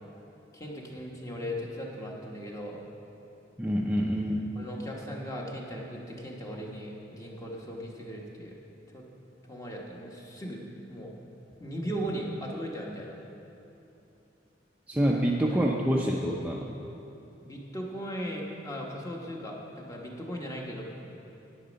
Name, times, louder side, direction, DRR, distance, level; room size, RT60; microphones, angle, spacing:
voice 1, 0.5-2.8 4.5-8.5 8.9-9.0 9.5-10.6 10.9-11.1 11.6-13.1 14.9-15.1 17.4-20.8, equal, 20° left, -1 dB, 1.2 m, -38 dB
voice 2, 3.6-4.5 14.9-16.8, equal, 10° right, -2 dB, 0.5 m, -27 dB
10.5 x 8.7 x 5.2 m, 2.9 s
head